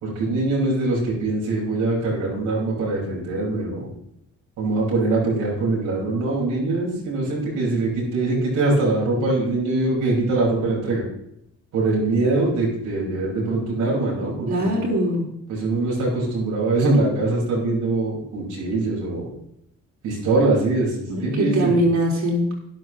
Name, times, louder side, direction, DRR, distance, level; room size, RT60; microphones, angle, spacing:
voice 1, 0.0-3.9 4.6-11.0 11.7-14.7 15.5-19.3 20.0-21.8, right 2 dB, 85° right, -5 dB, 4.9 m, -23 dB
voice 2, 14.5-15.3 21.1-22.6, equal, 65° right, -2 dB, 4.1 m, -22 dB
13.0 x 10.0 x 3.1 m, 0.77 s
cardioid pair, 90°, 30 cm